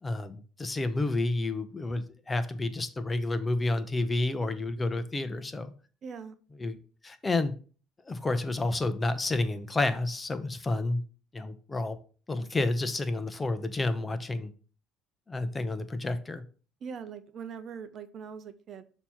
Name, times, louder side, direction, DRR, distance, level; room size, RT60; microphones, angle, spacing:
voice 1, 0.0-5.7 6.6-6.8 7.0-7.5 8.1-11.0 11.3-12.0 12.3-14.5 15.3-16.4, left 2 dB, 20° left, 11 dB, 0.7 m, -30 dB
voice 2, 6.0-6.4 16.8-18.8, right 6 dB, 50° right, 11 dB, 0.7 m, -41 dB
6.7 x 3.0 x 5.7 m, 0.39 s
supercardioid pair, 95°, 0 cm